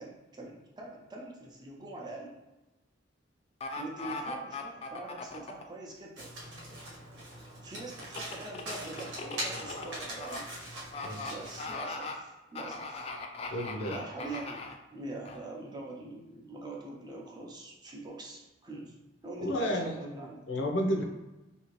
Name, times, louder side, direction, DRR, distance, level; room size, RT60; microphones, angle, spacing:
voice 1, 0.0-2.4 3.8-6.3 7.6-10.5 11.3-13.1 13.8-14.6 14.9-18.9 19.2-20.4, right 2 dB, 25° right, -2 dB, 0.5 m, -43 dB
sound 1, 3.6-5.6 8.0-10.4 10.9-11.3 11.6-12.1 12.6-14.7 15.3-15.4, left 3 dB, 35° left, 0.3 m, -39 dB
Domestic sounds home sounds, 6.2-11.8, right 1 dB, 80° right, 1.0 m, -42 dB
voice 2, 11.0-11.3 13.5-14.0 19.4-21.1, equal, 80° left, 1 dB, 0.6 m, -32 dB
2.8 x 2.7 x 3.0 m, 1.0 s
head